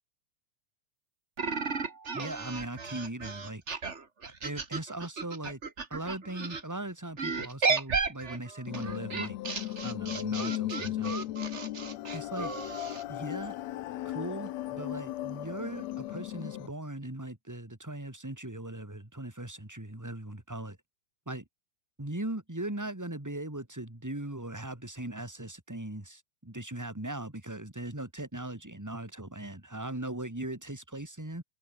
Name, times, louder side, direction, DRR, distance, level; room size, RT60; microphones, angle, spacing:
sound 1, 1.4-6.6 7.2-13.0, right 4 dB, 30° right, 1.4 m, -34 dB
voice 1, 2.1-3.6 4.2-5.6 5.9-9.4 9.8-11.1 12.1-12.5 13.1-13.5 14.0-20.8 21.3-21.4 22.0-31.4, right 1 dB, 5° right, 2.6 m, -39 dB
sound 2, 8.7-16.7, left 15 dB, 70° left, 1.7 m, -36 dB
open air
omnidirectional pair, 3.9 m